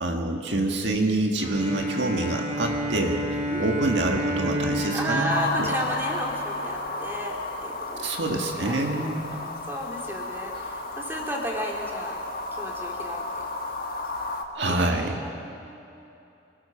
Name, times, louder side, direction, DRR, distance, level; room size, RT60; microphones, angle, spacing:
voice 1, 0.0-3.2 3.6-5.3 5.6-5.7 8.0-9.3 14.6-15.2, right 2 dB, 70° right, 2 dB, 1.7 m, -26 dB
Bowed string instrument, 1.4-6.8, equal, 40° right, 3.3 m, -31 dB
sound 1, 2.7-15.4, left 1 dB, 30° left, 3.0 m, -48 dB
voice 2, 4.9-8.2 8.6-12.1 12.5-13.5 14.6-16.1, equal, 10° right, -1 dB, 2.7 m, -33 dB
sound 2, 5.3-14.4, left 2 dB, 50° left, 1.5 m, -33 dB
26.0 x 18.5 x 5.7 m, 2.7 s
head